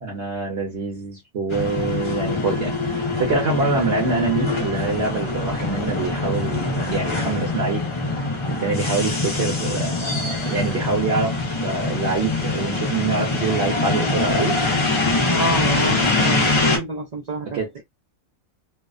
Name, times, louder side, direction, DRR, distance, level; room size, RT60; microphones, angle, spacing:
voice 1, 0.0-7.8 8.5-11.3 11.6-14.6 17.4-17.8, right 3 dB, 55° right, 1.1 m, -25 dB
sound 1, 1.5-16.8, left 3 dB, 35° left, 0.5 m, -23 dB
voice 2, 15.3-17.8, right 1 dB, 90° right, 0.3 m, -28 dB
2.7 x 2.0 x 2.3 m
omnidirectional pair, 1.4 m